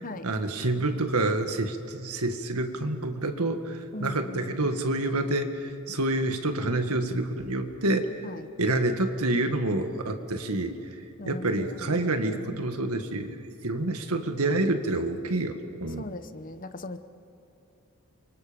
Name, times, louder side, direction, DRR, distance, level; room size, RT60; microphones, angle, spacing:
voice 1, 0.2-8.1 8.6-10.8 11.3-13.4 13.6-16.1, right 2 dB, 90° right, 6 dB, 1.8 m, -28 dB
voice 2, 3.9-4.7 8.2-8.4 11.2-12.6 16.0-17.0, left 2 dB, 40° left, 11 dB, 0.9 m, -39 dB
29.0 x 24.5 x 5.2 m, 2.7 s
head